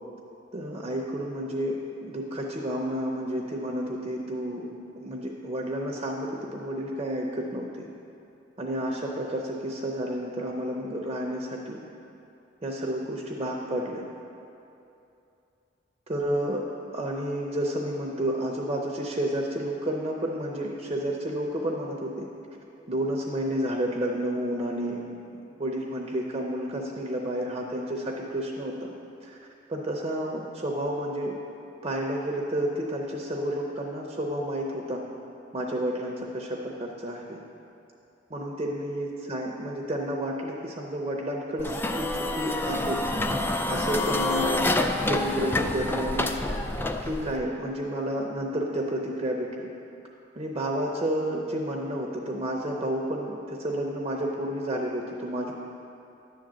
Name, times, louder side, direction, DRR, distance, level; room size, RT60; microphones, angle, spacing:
voice 1, 0.5-7.9 8.6-11.8 12.6-14.0 16.1-16.6 16.9-22.3 22.9-25.0 25.6-28.9 29.2-29.4 29.7-31.3 31.8-35.0 35.5-37.4 38.3-43.0 43.7-44.7 45.1-46.3 47.0-49.7 50.4-55.5, right 1 dB, 30° right, -1 dB, 0.7 m, -30 dB
sound 1, 41.6-47.4, left 2 dB, 10° left, 0.3 m, -27 dB
10.5 x 3.8 x 7.5 m, 2.8 s
head